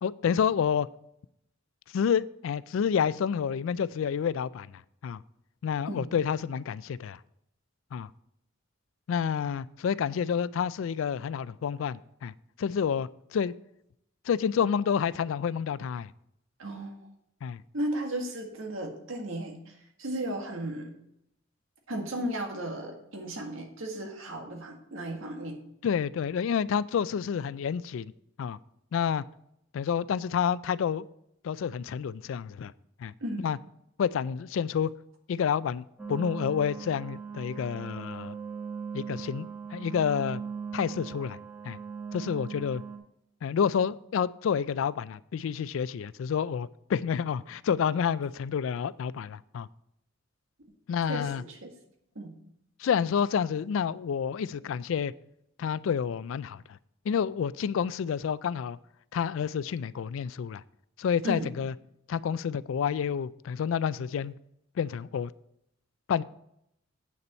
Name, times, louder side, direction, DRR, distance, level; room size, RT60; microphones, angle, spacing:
voice 1, 0.0-0.9 1.9-4.7 5.0-5.2 5.6-7.2 7.9-8.1 9.1-12.3 12.6-13.5 14.3-16.1 17.4-17.6 25.8-28.1 28.4-28.6 28.9-29.2 29.7-31.0 31.4-32.7 33.0-33.1 33.4-33.6 34.0-34.9 35.3-38.4 38.9-40.4 40.7-41.4 41.6-41.8 42.1-42.8 43.4-49.7 50.9-51.4 52.8-55.1 55.6-56.8 57.1-58.8 59.1-60.6 61.0-61.7 62.1-64.3 64.8-65.3 66.1-66.2, left 7 dB, 70° left, 18 dB, 0.3 m, -29 dB
voice 2, 16.6-16.9 17.7-19.5 20.0-20.9 21.9-25.6 33.2-33.6 51.1-51.7 52.1-52.3 61.2-61.5, right 1 dB, 85° right, 3 dB, 1.8 m, -35 dB
sound 1, 36.0-43.0, right 6 dB, 10° right, 1.3 m, -39 dB
8.5 x 6.8 x 4.3 m, 0.77 s
head